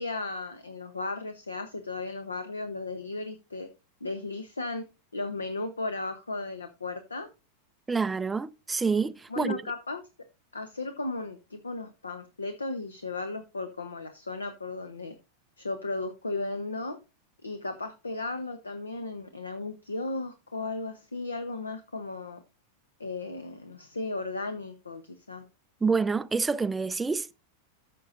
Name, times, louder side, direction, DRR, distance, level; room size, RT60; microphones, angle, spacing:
voice 1, 0.0-3.7 4.0-4.8 5.1-7.3 9.3-10.0 10.5-15.1 15.6-17.0 17.4-22.4 23.0-25.5, left 3 dB, 75° left, 0.8 m, -35 dB
voice 2, 7.9-9.6 25.8-27.3, right 4 dB, 10° right, 0.4 m, -27 dB
14.0 x 6.0 x 2.6 m
figure-of-eight pair, 90°, 0 cm